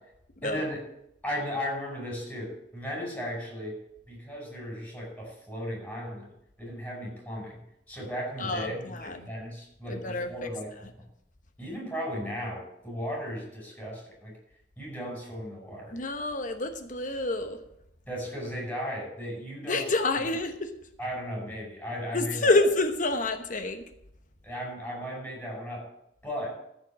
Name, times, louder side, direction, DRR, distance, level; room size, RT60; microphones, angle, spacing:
voice 1, 0.4-0.8 1.2-3.8 4.1-6.3 6.6-7.6 7.9-10.7 11.0-11.1 11.6-14.3 14.8-16.0 18.1-19.8 21.0-22.5 24.4-25.9 26.2-26.5, equal, 10° left, -3 dB, 5.2 m, -36 dB
voice 2, 8.4-9.3 9.9-10.9 15.9-17.6 19.7-20.8 22.1-23.9, left 2 dB, 45° left, 7 dB, 1.0 m, -28 dB
14.0 x 5.2 x 7.3 m, 0.79 s
head